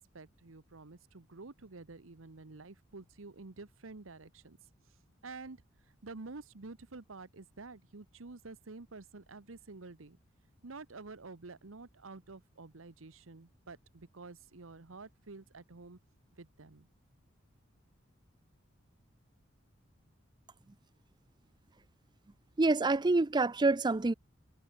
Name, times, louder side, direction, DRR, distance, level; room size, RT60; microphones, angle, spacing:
voice 1, 0.0-4.6 5.2-10.2 10.6-16.0 16.4-16.9, right 3 dB, 85° right, 1.1 m, -49 dB
voice 2, 22.6-24.1, right 3 dB, 20° right, 0.5 m, -27 dB
head